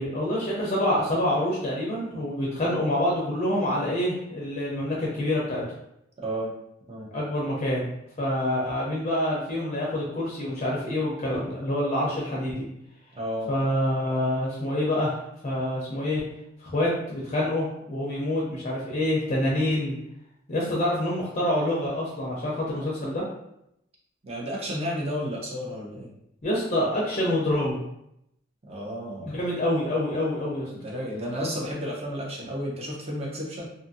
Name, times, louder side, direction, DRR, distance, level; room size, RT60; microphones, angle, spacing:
voice 1, 0.0-5.6 7.1-7.8 8.2-12.6 13.5-15.2 15.4-16.2 16.6-19.9 20.5-23.2 26.4-27.8 29.2-30.7, left 1 dB, 35° left, -5 dB, 0.5 m, -26 dB
voice 2, 6.2-6.5 6.9-7.1 13.2-13.5 24.2-26.1 28.7-29.4 30.7-33.7, equal, 30° right, -3 dB, 0.7 m, -32 dB
2.6 x 2.5 x 2.6 m, 0.79 s
head